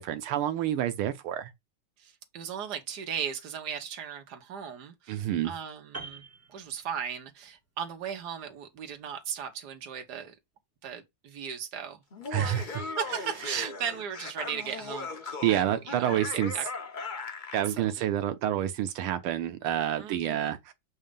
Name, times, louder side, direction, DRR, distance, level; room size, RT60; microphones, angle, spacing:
voice 1, 0.0-1.5 5.1-5.5 12.3-12.7 13.5-13.7 15.4-16.5 17.5-20.7, right 11 dB, 85° right, 1.6 m, -28 dB
voice 2, 2.0-10.4 10.8-12.0 12.4-16.6 17.7-18.1 20.0-20.6, right 8 dB, 55° right, 1.6 m, -37 dB
Piano, 5.9-7.4 7.7-7.9, right 3 dB, 10° right, 1.5 m, -44 dB
Laughter, 12.1-17.7, left 4 dB, 55° left, 0.5 m, -38 dB
7.4 x 2.8 x 5.1 m
omnidirectional pair, 2.3 m